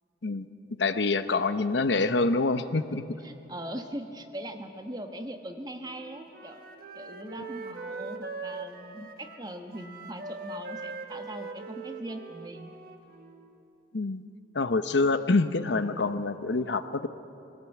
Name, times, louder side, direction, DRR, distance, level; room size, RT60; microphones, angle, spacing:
voice 1, 0.8-3.0 13.9-14.2 14.5-17.1, left 3 dB, 75° left, 11 dB, 0.8 m, -26 dB
voice 2, 3.2-6.6 6.9-12.7, right 1 dB, 20° right, 5 dB, 1.2 m, -40 dB
Wind instrument woodwind instrument, 5.8-13.6, right 3 dB, 50° right, 1.3 m, -41 dB
21.0 x 17.0 x 8.2 m, 2.8 s
head